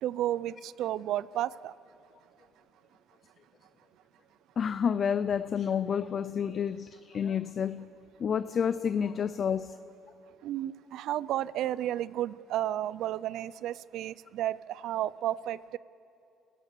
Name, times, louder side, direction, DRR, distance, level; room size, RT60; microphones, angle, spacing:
voice 1, 0.0-1.7 10.4-15.8, right 12 dB, 70° right, 19 dB, 0.5 m, -32 dB
voice 2, 4.6-7.9 8.2-9.8, left 7 dB, 45° left, 13 dB, 0.5 m, -29 dB
29.0 x 16.5 x 6.7 m, 2.8 s
cardioid pair, 115°, 0 cm